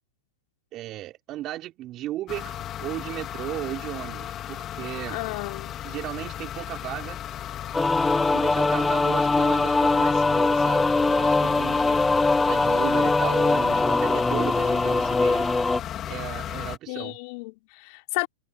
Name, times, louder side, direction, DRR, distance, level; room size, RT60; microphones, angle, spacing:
voice 1, 0.7-5.2 5.8-7.2 8.3-12.0 12.5-15.5 16.1-17.2, right 14 dB, 35° right, 5.2 m, -35 dB
sound 1, 2.3-16.8, left 11 dB, 30° left, 2.5 m, -35 dB
voice 2, 5.1-5.8 16.9-18.3, left 29 dB, 55° left, 3.3 m, -32 dB
sound 2, 7.7-15.8, left 3 dB, 10° left, 0.4 m, -22 dB
hypercardioid pair, 115°, 0 cm